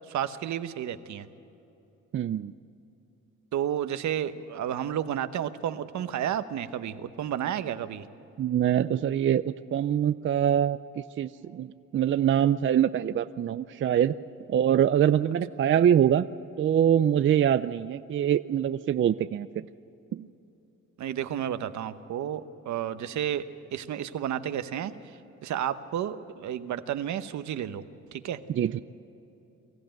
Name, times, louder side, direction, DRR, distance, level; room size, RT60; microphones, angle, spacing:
voice 1, 0.1-1.3 3.5-8.1 21.0-23.4 23.7-24.9 25.4-27.8 28.1-28.4, right 10 dB, 70° right, 11 dB, 1.0 m, -31 dB
voice 2, 2.1-2.5 8.4-14.1 14.5-16.3 16.6-19.5 20.1-20.3 28.6-28.8, right 9 dB, 40° right, 12 dB, 0.5 m, -24 dB
23.5 x 14.5 x 9.0 m, 2.9 s
cardioid pair, 90°, 30 cm